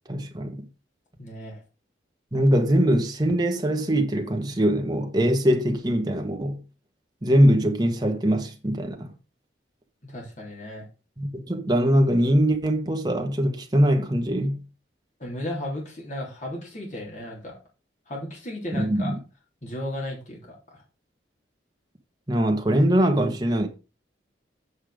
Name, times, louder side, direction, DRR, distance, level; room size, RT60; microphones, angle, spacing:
voice 1, 0.1-0.6 2.3-6.6 7.2-9.1 11.2-14.6 18.7-19.2 22.3-23.7, equal, 20° right, 1.4 m, -22 dB
voice 2, 1.2-1.6 10.0-10.9 15.2-17.5 18.1-19.1 19.6-20.8, left 1 dB, 40° left, 3.6 m, -35 dB
8.4 x 5.5 x 5.0 m
head